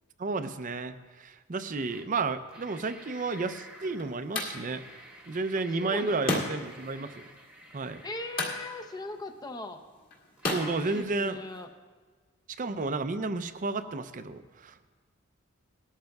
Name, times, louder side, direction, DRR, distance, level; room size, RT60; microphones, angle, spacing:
voice 1, 0.2-4.8 5.3-7.2 7.7-8.0 10.5-11.4 12.6-14.9, right 3 dB, 35° right, 10 dB, 0.5 m, -32 dB
sound 1, 1.9-2.1 2.4-9.2 9.8-9.9 10.4-11.0, equal, 5° right, 1.0 m, -51 dB
sound 2, 3.1-11.6, left 2 dB, 40° left, 2.1 m, -37 dB
voice 2, 5.5-6.3 8.0-9.8 10.8-11.7, left 2 dB, 20° left, 7 dB, 0.6 m, -40 dB
19.0 x 13.0 x 2.3 m, 1.5 s
head